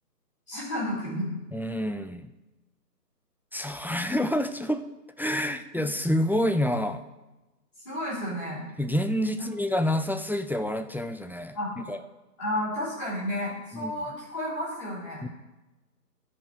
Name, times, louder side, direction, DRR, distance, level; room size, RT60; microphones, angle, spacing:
voice 1, 0.5-1.3 7.8-8.6 9.4-9.5 11.5-11.7 12.4-15.2, equal, 20° left, -9 dB, 3.5 m, -32 dB
voice 2, 1.5-2.3 3.5-4.8 5.2-7.0 8.8-12.0 13.7-13.9 15.2-15.3, left 1 dB, 5° right, 9 dB, 0.3 m, -28 dB
12.5 x 5.0 x 6.2 m, 1.1 s
hypercardioid pair, 175°, 49 cm